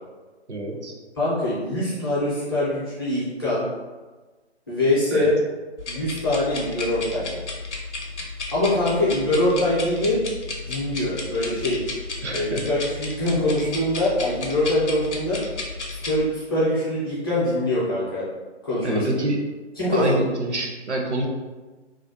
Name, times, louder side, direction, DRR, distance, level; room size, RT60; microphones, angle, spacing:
voice 1, 0.5-0.9 5.1-5.3 12.2-12.7 18.8-19.4 19.9-21.3, right 1 dB, 85° right, 0 dB, 0.6 m, -26 dB
voice 2, 1.2-3.6 4.7-5.3 5.9-7.4 8.5-10.2 10.6-11.8 12.3-15.4 15.9-18.2 18.6-19.1 19.8-20.2, left 1 dB, 20° left, -11 dB, 0.5 m, -23 dB
sound 1, 5.8-16.2, left 3 dB, 85° left, 0.6 m, -33 dB
2.4 x 2.1 x 2.6 m, 1.3 s
figure-of-eight pair, 135°, 34 cm